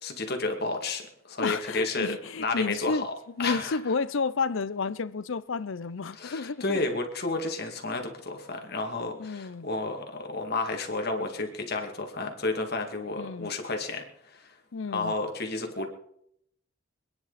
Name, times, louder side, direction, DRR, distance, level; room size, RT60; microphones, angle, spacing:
voice 1, 0.0-2.1 2.4-3.1 3.4-3.8 6.2-14.0 14.3-14.5 14.9-15.9, left 3 dB, 45° left, 2.3 m, -31 dB
voice 2, 1.4-3.1 3.4-6.8 9.2-9.7 13.1-13.5 14.7-15.1, left 4 dB, 60° left, 0.6 m, -31 dB
26.0 x 10.5 x 4.1 m
head